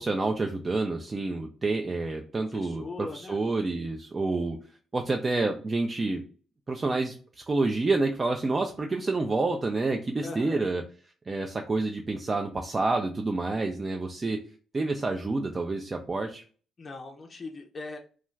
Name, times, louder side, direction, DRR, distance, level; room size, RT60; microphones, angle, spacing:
voice 1, 0.0-4.6 4.9-6.2 6.7-10.8 11.3-14.4 14.7-16.4, right 3 dB, 35° right, 3 dB, 0.4 m, -28 dB
voice 2, 2.4-3.4 10.2-10.6 16.8-18.0, left 3 dB, 45° left, 2 dB, 0.4 m, -40 dB
2.3 x 2.3 x 3.1 m, 0.40 s
supercardioid pair, 55°, 0 cm